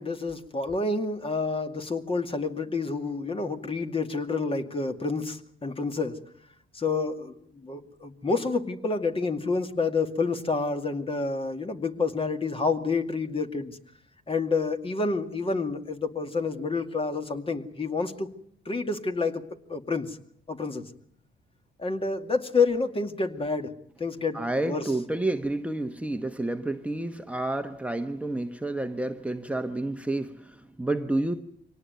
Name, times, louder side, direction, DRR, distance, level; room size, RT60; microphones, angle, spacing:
voice 1, 0.0-6.2 6.7-13.8 14.3-18.3 18.7-19.4 19.7-20.2 20.5-20.9 21.8-23.7 24.0-24.9, left 4 dB, 25° left, 2.3 m, -28 dB
voice 2, 24.3-31.4, right 2 dB, 5° right, 1.2 m, -30 dB
24.5 x 18.5 x 9.4 m
cardioid pair, 90°, 20 cm